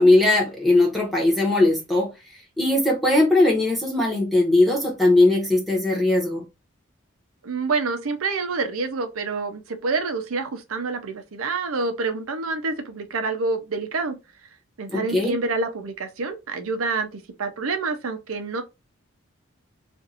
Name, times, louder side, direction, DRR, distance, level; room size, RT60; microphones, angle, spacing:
voice 1, 0.0-2.1 2.6-6.4 14.9-15.3, left 2 dB, ahead, 1.0 m, -19 dB
voice 2, 7.4-14.2 14.8-18.6, right 3 dB, 85° right, 0.6 m, -27 dB
2.5 x 2.5 x 4.1 m
head